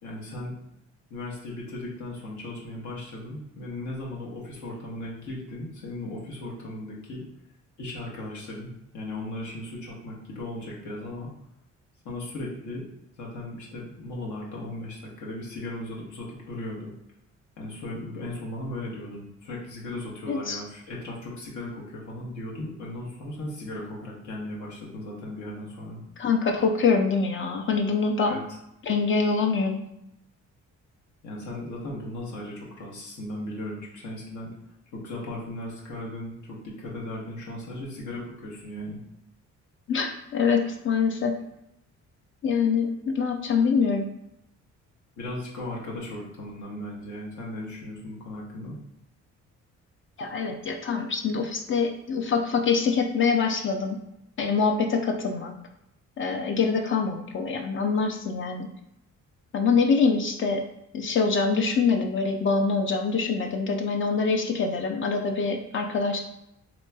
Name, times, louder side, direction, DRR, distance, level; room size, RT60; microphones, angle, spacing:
voice 1, 0.0-0.5 1.1-7.2 7.8-11.3 12.0-12.8 13.2-16.9 17.6-26.0 28.2-28.6 31.2-34.5 34.9-39.0 45.2-48.8, left 1 dB, 75° left, -3 dB, 1.0 m, -37 dB
voice 2, 20.3-20.6 26.2-28.4 28.9-29.8 39.9-41.3 42.4-44.0 50.2-54.0 54.4-55.5 56.2-58.7 59.5-60.6 60.9-66.2, left 5 dB, 45° left, 4 dB, 0.4 m, -24 dB
3.0 x 2.9 x 2.2 m, 0.82 s
cardioid pair, 90°, 30 cm